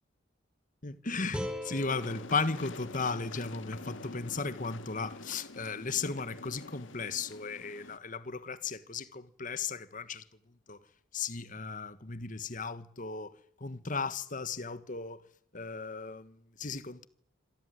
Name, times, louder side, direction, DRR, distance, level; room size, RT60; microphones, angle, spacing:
voice 1, 0.8-10.2 10.7-10.8 11.1-13.3 13.6-15.2 15.5-17.1, left 4 dB, 40° left, 1.4 m, -36 dB
sound 1, 1.3-4.4, left 1 dB, 5° right, 5.2 m, -43 dB
sound 2, 1.8-8.0, left 2 dB, 70° left, 1.9 m, -46 dB
26.5 x 17.5 x 9.5 m
head